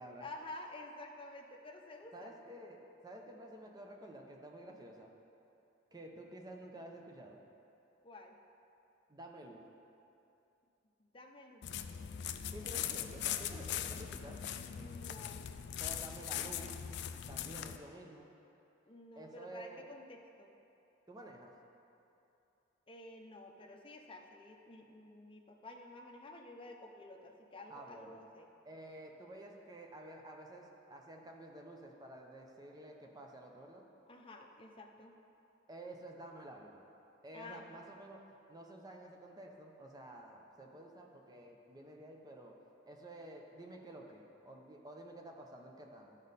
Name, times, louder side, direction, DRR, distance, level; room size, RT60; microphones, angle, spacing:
voice 1, 0.2-2.3 8.0-8.4 11.0-11.6 14.7-15.4 18.8-20.5 22.9-28.5 34.1-35.1 37.3-37.8, left 2 dB, 30° left, 1 dB, 0.7 m, -51 dB
voice 2, 2.1-5.1 5.9-7.4 9.1-9.6 12.5-14.4 15.8-16.7 17.3-18.3 19.2-19.9 21.1-21.5 27.7-28.2 28.6-33.8 35.7-36.8 37.2-38.2 38.5-42.6 42.8-46.2, right 1 dB, 20° right, 1 dB, 0.8 m, -51 dB
sound 1, 11.6-17.8, left 9 dB, 60° left, 0.4 m, -40 dB
12.0 x 5.2 x 4.1 m, 2.8 s
head